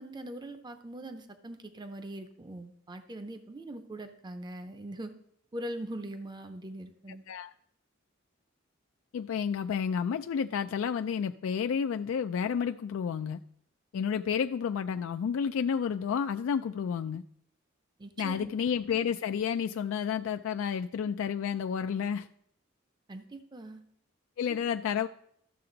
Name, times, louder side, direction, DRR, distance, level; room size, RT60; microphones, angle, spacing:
voice 1, 0.0-5.1 5.5-7.2 18.0-18.5 23.1-23.8, right 1 dB, 20° right, 8 dB, 0.6 m, -41 dB
voice 2, 9.1-13.4 13.9-17.2 18.2-22.3 24.4-25.1, left 7 dB, 75° left, 8 dB, 0.3 m, -30 dB
13.0 x 6.7 x 3.9 m, 0.70 s
head